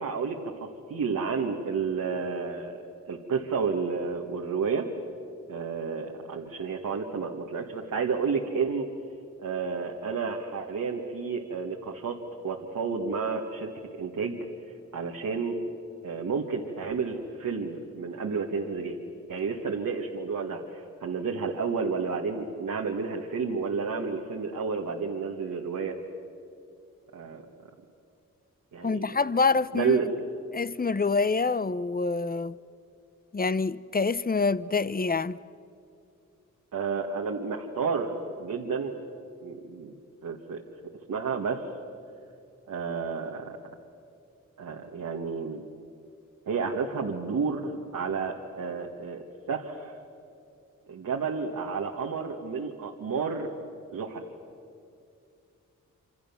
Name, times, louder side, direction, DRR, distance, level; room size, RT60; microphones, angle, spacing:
voice 1, 0.0-2.7 3.1-4.9 5.5-8.9 9.4-12.2 12.4-13.7 14.0-14.4 14.9-15.6 16.0-19.0 19.3-26.0 27.1-27.4 28.7-29.1 29.7-30.1 36.7-39.0 39.4-39.9 40.2-40.6 41.1-41.6 42.7-43.6 44.6-45.6 46.5-49.9 50.9-53.5 53.9-54.2, right 5 dB, 80° right, 1.9 m, -31 dB
voice 2, 28.8-30.0 30.5-32.6 33.3-35.4, left 4 dB, 30° left, 0.8 m, -26 dB
27.0 x 26.5 x 7.2 m
cardioid pair, 50°, 31 cm